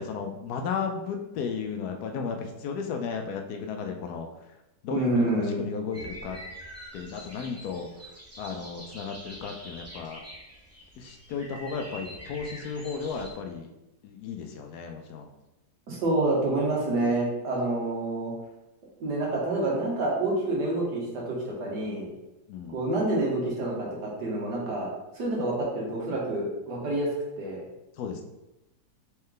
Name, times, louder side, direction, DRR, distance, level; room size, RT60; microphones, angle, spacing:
voice 1, 0.0-4.3 4.8-6.4 6.9-7.9 8.4-10.2 11.0-13.7 14.0-15.3 21.6-22.0 22.5-22.8 28.0-28.2, left 5 dB, 75° left, 4 dB, 1.0 m, -34 dB
voice 2, 4.9-5.7 15.9-18.3 19.0-22.1 22.7-24.9 25.2-27.1 27.4-27.6, right 2 dB, 80° right, -3 dB, 1.8 m, -28 dB
sound 1, 5.9-13.3, equal, 20° right, 0.4 m, -45 dB
4.3 x 3.2 x 3.7 m, 0.95 s
omnidirectional pair, 1.8 m